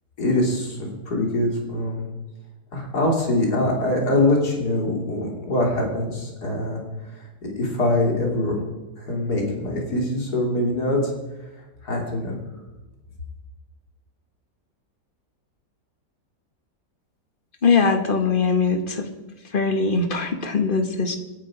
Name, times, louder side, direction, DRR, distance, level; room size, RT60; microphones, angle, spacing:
voice 1, 0.2-2.1 2.7-6.8 7.1-8.6 9.0-11.1 11.8-12.4, left 1 dB, 75° left, 0 dB, 3.7 m, -23 dB
voice 2, 17.6-19.1 19.5-21.2, left 4 dB, 35° left, 7 dB, 1.6 m, -21 dB
26.5 x 9.3 x 5.0 m, 1.1 s
omnidirectional pair, 1.7 m